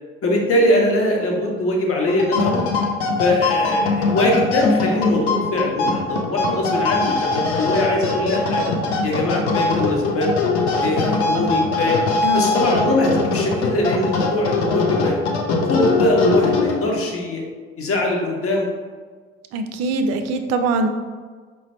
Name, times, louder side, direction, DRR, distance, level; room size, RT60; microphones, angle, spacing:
voice 1, 0.2-2.7 3.2-8.6 9.0-10.3 10.8-12.0 12.3-15.2 15.6-17.4 17.8-18.7, left 1 dB, 40° left, 0 dB, 1.0 m, -21 dB
sound 1, 2.1-17.1, left 3 dB, 70° left, 0.6 m, -21 dB
voice 2, 12.2-12.7 19.5-20.9, right 3 dB, 50° right, 6 dB, 0.5 m, -22 dB
4.9 x 2.2 x 4.1 m, 1.5 s
figure-of-eight pair, 50°, 35 cm